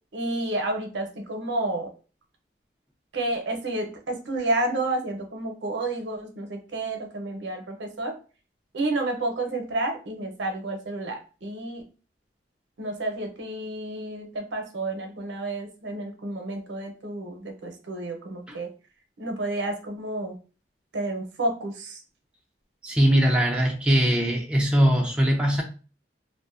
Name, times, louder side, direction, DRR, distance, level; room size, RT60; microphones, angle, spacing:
voice 1, 0.1-1.9 3.1-8.1 8.7-11.8 12.8-18.7 19.2-20.3 20.9-22.0, right 2 dB, 85° right, 0.6 m, -30 dB
voice 2, 22.8-25.6, equal, 5° right, 0.4 m, -21 dB
2.5 x 2.1 x 2.4 m
head